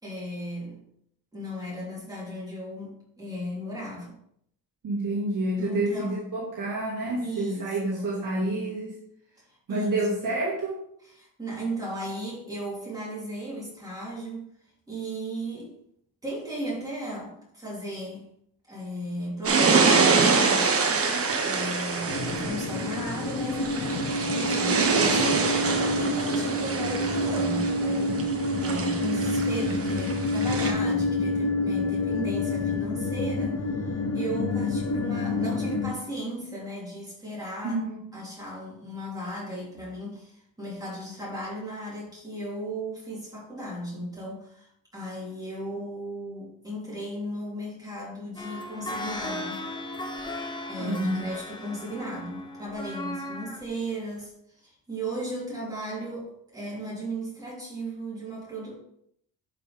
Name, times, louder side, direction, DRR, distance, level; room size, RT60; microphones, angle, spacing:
voice 1, 0.0-0.8 1.3-4.1 5.6-6.2 7.2-8.1 9.7-9.9 11.1-14.5 14.9-15.7 16.2-18.2 18.7-21.1 21.4-37.8 38.1-49.6 50.7-58.7, right 1 dB, 10° right, -7 dB, 3.4 m, -36 dB
voice 2, 4.8-9.0 9.7-10.8 37.6-38.1 50.8-51.2, right 2 dB, 65° right, -5 dB, 2.3 m, -28 dB
sound 1, 19.4-30.7, right 4 dB, 40° right, 1.4 m, -26 dB
sound 2, 22.1-35.9, left 2 dB, 45° left, 0.9 m, -28 dB
sound 3, 48.4-53.7 54.2-54.3, left 1 dB, 15° left, 0.9 m, -36 dB
11.0 x 5.5 x 3.6 m, 0.71 s
wide cardioid pair, 155°, 34 cm